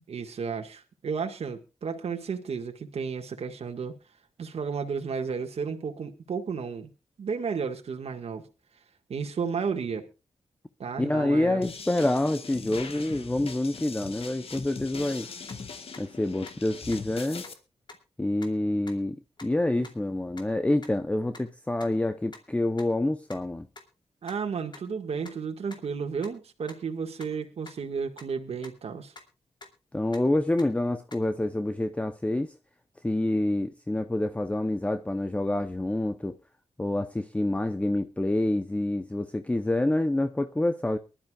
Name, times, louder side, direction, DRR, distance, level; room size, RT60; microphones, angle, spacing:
voice 1, 0.1-4.0 4.4-6.9 7.2-8.4 9.1-10.1 10.8-11.6 19.8-19.9 24.2-29.1, right 5 dB, 70° right, 1.7 m, -33 dB
voice 2, 11.0-15.3 16.0-17.4 18.2-23.7 29.9-32.5 33.0-36.4 36.8-41.0, left 1 dB, 10° left, 0.8 m, -27 dB
sound 1, 11.6-17.5, left 5 dB, 60° left, 1.7 m, -41 dB
sound 2, 15.5-15.6 15.9-16.0 16.4-16.5 16.9-17.0 17.4-17.5 17.9-18.0 18.4-18.5 18.9-19.0 19.4-19.5 19.8-19.9 20.4-20.5 20.8-20.9 21.3-21.4 21.8-21.9 22.3-22.4 22.8-22.9 23.3-23.4 23.8-23.9 24.3-24.4 24.7-24.8 25.2-25.3 25.7-25.8 26.2-26.3 26.7-26.8 27.2-27.3 27.7-27.8 28.2-28.3 28.6-28.7 29.2-29.3 29.6-29.7 30.1-30.2 30.6-30.7 31.1-31.2, left 3 dB, 45° left, 2.8 m, -45 dB
23.5 x 12.0 x 2.4 m
wide cardioid pair, 110°, 11 cm